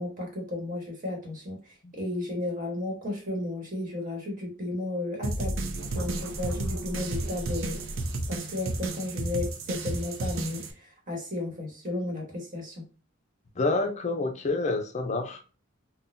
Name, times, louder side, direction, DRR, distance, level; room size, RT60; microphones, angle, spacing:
voice 1, 0.0-1.6 1.9-5.5 5.9-7.8 8.3-10.6 11.1-12.8, left 2 dB, 45° right, 1.3 m, -33 dB
sound 1, 5.2-10.7, right 2 dB, 90° right, 0.5 m, -32 dB
voice 2, 13.6-15.5, left 3 dB, 35° left, 0.5 m, -28 dB
3.8 x 2.2 x 2.6 m
head